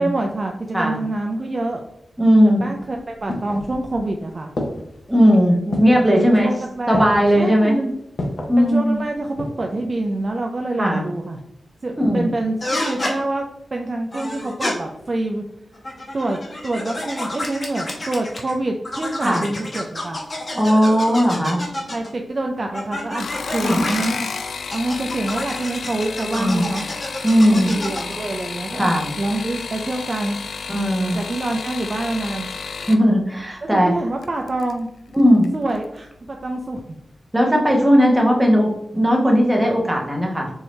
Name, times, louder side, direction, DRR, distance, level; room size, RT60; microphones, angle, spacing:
voice 1, 0.0-1.8 2.6-4.5 6.1-7.9 8.6-11.4 11.8-13.5 13.7-15.4 16.1-20.2 21.9-24.3 24.7-26.9 27.5-28.9 29.2-30.4 31.0-32.5 33.7-34.9 35.5-36.8, right 2 dB, 35° right, 2 dB, 0.4 m, -26 dB
voice 2, 2.2-2.7 5.1-6.5 6.9-7.8 8.5-9.0 10.8-11.0 12.0-12.3 19.2-19.4 20.5-21.6 23.6-24.0 26.3-26.7 27.2-27.7 28.8-29.1 30.7-31.2 32.9-33.9 35.1-35.5 37.3-40.5, equal, 10° right, 0 dB, 0.9 m, -17 dB
sound 1, 2.8-4.1 4.6-5.1 5.7-6.1 6.9-7.4 8.2-8.6 9.1-9.7 10.0-10.1, left 1 dB, 55° left, 0.7 m, -29 dB
sound 2, 12.6-13.1 14.1-14.7 15.7-18.5 18.8-22.1 22.7-24.1 24.7-28.2, left 1 dB, 35° left, 1.1 m, -29 dB
sound 3, 23.1-33.0 34.2-34.7 35.1-35.6 35.8-35.9, left 5 dB, 80° left, 0.3 m, -31 dB
4.6 x 2.7 x 3.2 m, 0.80 s
wide cardioid pair, 125°, 0 cm